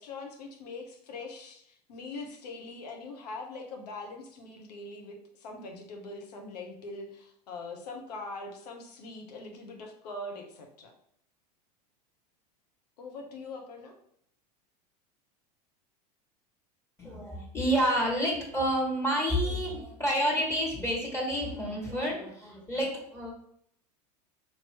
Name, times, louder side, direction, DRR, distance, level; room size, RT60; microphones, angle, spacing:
voice 1, 0.0-10.9 13.0-13.9, left 3 dB, 80° left, 3 dB, 1.0 m, -42 dB
voice 2, 17.0-23.3, equal, 15° left, -2 dB, 1.5 m, -29 dB
4.6 x 2.9 x 3.0 m, 0.69 s
hypercardioid pair, 95°, 20 cm